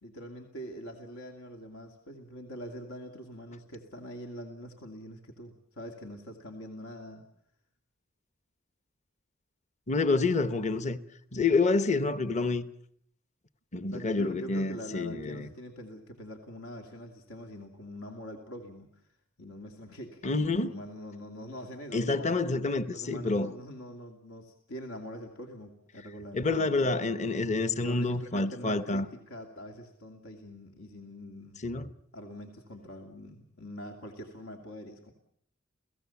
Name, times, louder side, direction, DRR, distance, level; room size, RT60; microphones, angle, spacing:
voice 1, 0.0-7.2 13.9-19.0 19.4-22.4 22.9-27.1 27.7-31.6 32.1-35.1, equal, 80° left, 2.5 m, -44 dB
voice 2, 9.9-11.0 11.3-12.7 13.7-15.5 20.2-20.8 21.9-23.5 26.3-29.1 31.6-31.9, left 3 dB, 35° left, 0.9 m, -28 dB
30.0 x 17.0 x 7.2 m
head